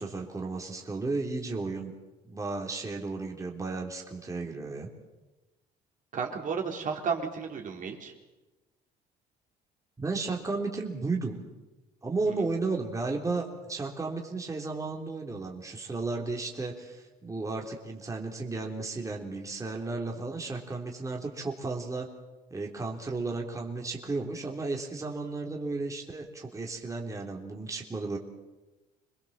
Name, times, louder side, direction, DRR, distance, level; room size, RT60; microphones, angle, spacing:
voice 1, 0.0-1.9 2.2-4.9 10.0-11.4 12.0-22.1 22.5-28.2, right 3 dB, 20° right, 0 dB, 3.5 m, -34 dB
voice 2, 6.1-8.1 12.3-12.5, right 6 dB, 50° right, 1 dB, 4.1 m, -33 dB
27.5 x 21.0 x 7.5 m, 1.1 s
cardioid pair, 110°, 17 cm